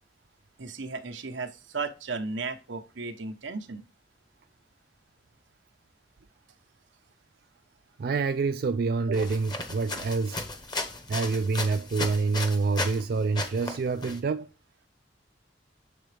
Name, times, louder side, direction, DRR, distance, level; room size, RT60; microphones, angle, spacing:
voice 1, 0.6-3.8, right 4 dB, 85° right, 0.9 m, -35 dB
voice 2, 8.0-10.5 11.1-14.5, right 4 dB, 55° right, 0.3 m, -27 dB
sound 1, 9.1-13.0 13.3-14.2, left 2 dB, 25° left, 0.9 m, -35 dB
7.7 x 3.9 x 3.3 m
head